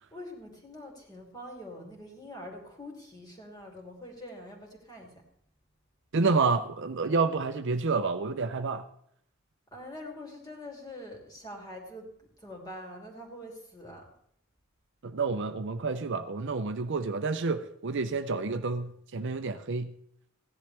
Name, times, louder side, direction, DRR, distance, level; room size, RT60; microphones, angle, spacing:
voice 1, 0.1-5.2 9.7-14.0, left 1 dB, 20° left, 0 dB, 2.8 m, -44 dB
voice 2, 6.1-8.8 15.0-20.0, right 4 dB, 60° right, 9 dB, 0.6 m, -29 dB
16.5 x 10.5 x 3.4 m, 0.68 s
head